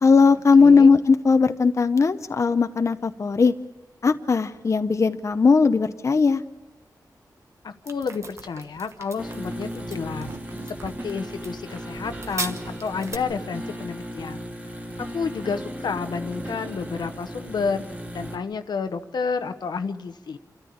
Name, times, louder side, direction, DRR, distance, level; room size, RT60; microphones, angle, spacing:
voice 1, 0.0-3.5 4.0-6.4, left 4 dB, 45° left, 9 dB, 0.7 m, -18 dB
voice 2, 0.6-0.9 7.6-10.3 10.8-14.4 15.0-17.8 18.1-20.4, left 5 dB, 85° left, 8 dB, 1.0 m, -30 dB
sound 1, 7.9-13.2, right 3 dB, 45° right, 1.3 m, -38 dB
sound 2, 9.2-18.4, equal, 20° right, 2.8 m, -36 dB
28.0 x 13.5 x 8.7 m, 1.2 s
wide cardioid pair, 125°, 7 cm